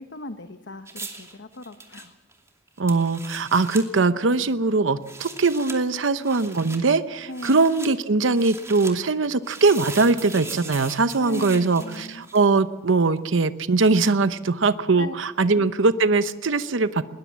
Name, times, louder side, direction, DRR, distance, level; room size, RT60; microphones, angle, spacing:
voice 1, 0.0-2.1 7.3-7.7 11.1-12.3 15.0-15.1 15.4-15.7, left 2 dB, 65° left, 8 dB, 1.0 m, -38 dB
sound 1, 0.9-3.9 4.9-5.8 6.2-6.8 7.3-7.9 8.3-9.0 9.4-12.6 13.9-14.0, right 3 dB, 15° right, 2.6 m, -40 dB
voice 2, 2.8-17.0, right 3 dB, 90° right, 12 dB, 0.8 m, -21 dB
21.0 x 19.5 x 7.4 m, 1.1 s
head